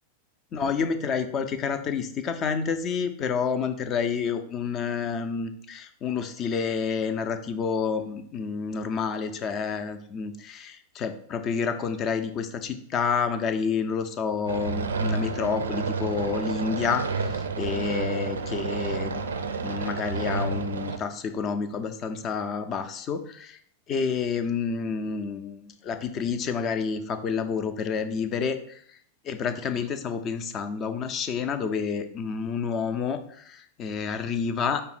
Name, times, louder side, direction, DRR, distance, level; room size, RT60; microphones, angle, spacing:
voice 1, 0.5-19.3 19.6-23.6 23.9-28.8 29.2-34.8, left 6 dB, 30° left, 9 dB, 0.4 m, -29 dB
sound 1, 14.5-21.0, right 4 dB, 70° right, 0.4 m, -30 dB
5.3 x 2.1 x 4.1 m, 0.64 s
figure-of-eight pair, 90°, 0 cm